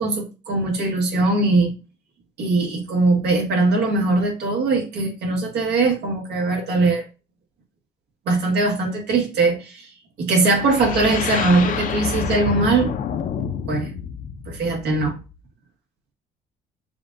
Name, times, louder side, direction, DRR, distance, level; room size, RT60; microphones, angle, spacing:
voice 1, 0.0-1.7 2.4-7.0 8.3-9.9 10.2-12.9 13.7-13.9 14.5-15.1, right 3 dB, 75° right, 0 dB, 1.7 m, -20 dB
sound 1, 10.5-15.4, left 7 dB, 55° left, 0.6 m, -28 dB
6.9 x 2.5 x 2.6 m, 0.31 s
cardioid pair, 110°, 17 cm